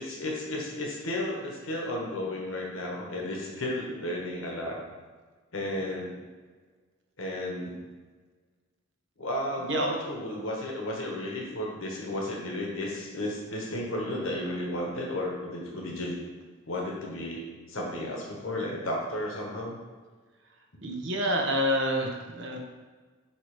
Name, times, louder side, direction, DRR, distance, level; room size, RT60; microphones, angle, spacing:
voice 1, 0.0-4.8 5.5-6.2 7.2-7.8 9.2-16.1 16.7-17.4 17.7-19.8, left 1 dB, 85° left, -2 dB, 1.3 m, -33 dB
voice 2, 20.8-22.6, equal, 60° right, 1 dB, 1.0 m, -28 dB
7.7 x 2.9 x 5.0 m, 1.4 s
head